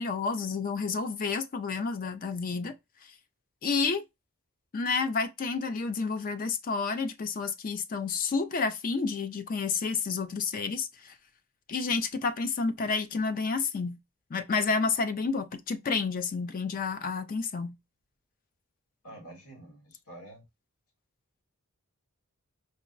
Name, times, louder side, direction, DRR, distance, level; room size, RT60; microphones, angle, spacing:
voice 1, 0.0-2.8 3.6-4.0 4.7-11.1 11.7-14.0 14.3-17.8, left 4 dB, 40° left, 0.4 m, -30 dB
voice 2, 19.0-20.4, right 1 dB, 85° left, 1.4 m, -48 dB
5.2 x 2.0 x 2.4 m
head